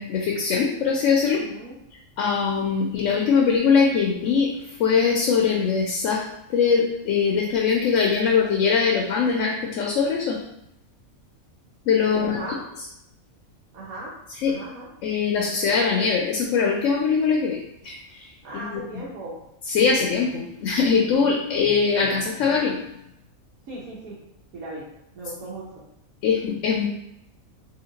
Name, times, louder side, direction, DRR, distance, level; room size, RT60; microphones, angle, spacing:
voice 1, 0.0-1.4 2.2-4.5 4.8-6.2 6.5-10.4 11.9-12.4 14.4-14.5 15.0-18.8 19.7-22.8 26.2-26.9, left 5 dB, 70° left, 0 dB, 0.9 m, -22 dB
voice 2, 1.3-1.8 12.0-12.6 13.7-14.1 14.4-14.9 18.4-19.4 23.7-24.2 24.5-24.9 25.1-25.8, right 2 dB, 85° right, -7 dB, 1.3 m, -37 dB
2.9 x 2.8 x 3.9 m, 0.79 s
omnidirectional pair, 1.5 m